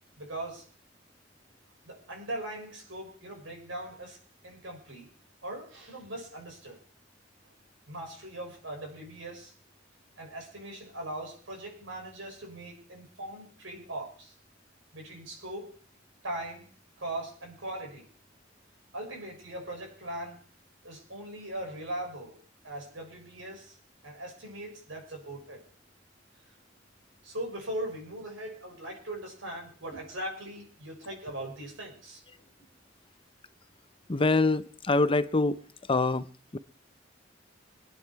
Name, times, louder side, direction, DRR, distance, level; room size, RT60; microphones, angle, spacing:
voice 1, 0.2-0.7 1.8-4.2 4.4-5.1 5.4-6.8 7.9-9.5 10.2-14.3 14.9-15.7 16.2-16.7 17.0-18.1 18.9-20.4 20.8-22.4 22.6-23.8 24.0-25.6 26.5-26.6 27.2-32.2, right 1 dB, 85° right, 6.5 m, -40 dB
voice 2, 34.1-35.6 35.9-36.6, left 3 dB, 30° left, 0.7 m, -25 dB
24.5 x 9.6 x 4.6 m
head